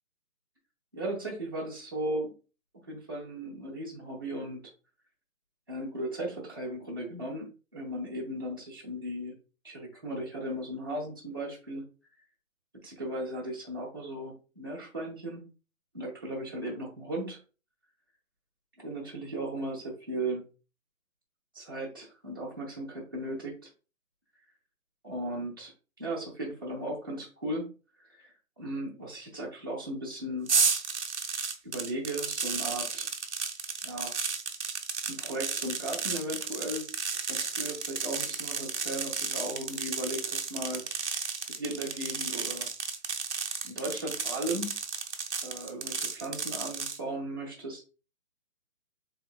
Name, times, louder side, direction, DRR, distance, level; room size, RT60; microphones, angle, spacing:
voice 1, 0.9-2.3 2.9-4.7 5.7-9.3 9.6-11.8 12.8-15.4 15.9-17.4 18.8-20.4 21.5-23.7 25.0-27.7 28.0-30.5 31.6-33.1 33.8-34.2 35.0-36.9 37.3-40.8 41.5-42.7 43.6-44.8 45.4-47.9, right 1 dB, 15° right, -6 dB, 0.8 m, -36 dB
sound 1, 30.5-47.0, right 5 dB, 55° right, 0.7 m, -33 dB
5.6 x 3.8 x 2.3 m, 0.34 s
hypercardioid pair, 175°, 41 cm